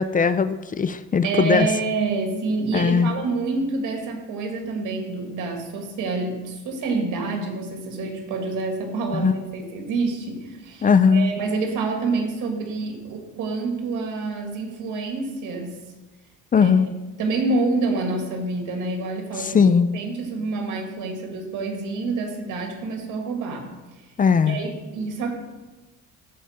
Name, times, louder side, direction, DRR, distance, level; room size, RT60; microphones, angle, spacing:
voice 1, 0.0-1.7 2.7-3.1 9.1-9.3 10.8-11.3 16.5-16.9 19.4-19.9 24.2-24.6, left 6 dB, 30° left, 13 dB, 0.4 m, -19 dB
voice 2, 1.2-15.8 16.6-16.7 17.2-23.7 24.5-25.3, right 3 dB, 90° right, 2 dB, 2.0 m, -27 dB
14.0 x 4.9 x 4.3 m, 1.2 s
cardioid pair, 90°, 30 cm